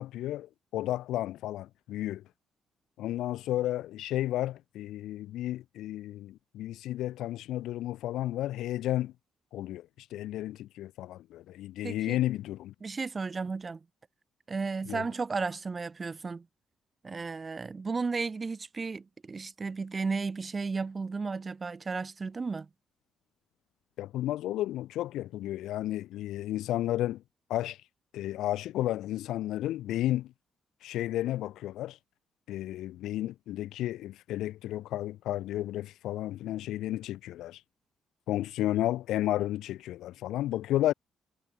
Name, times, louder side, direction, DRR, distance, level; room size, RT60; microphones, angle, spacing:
voice 1, 0.0-2.2 3.0-9.1 9.5-12.7 14.9-15.0 24.0-27.2 27.5-27.8 28.1-30.3 30.8-32.0 32.5-37.6 38.3-40.9, left 14 dB, 80° left, 1.0 m, -32 dB
voice 2, 11.8-12.2 12.8-13.8 14.5-16.4 17.0-22.7, right 4 dB, 35° right, 0.5 m, -34 dB
supercardioid pair, 55°, 0 cm